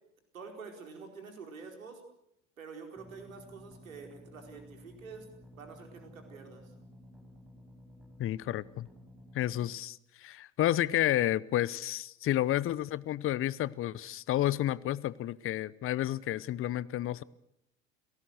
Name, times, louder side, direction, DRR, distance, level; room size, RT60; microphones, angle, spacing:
voice 1, 0.3-2.0 2.6-5.3 5.6-6.7, right 5 dB, 80° right, 4.8 m, -47 dB
sound 1, 3.0-9.7, equal, ahead, 6.0 m, -54 dB
voice 2, 8.2-8.9 9.3-17.2, left 13 dB, 35° left, 0.8 m, -31 dB
30.0 x 18.0 x 6.5 m
figure-of-eight pair, 75°, 40 cm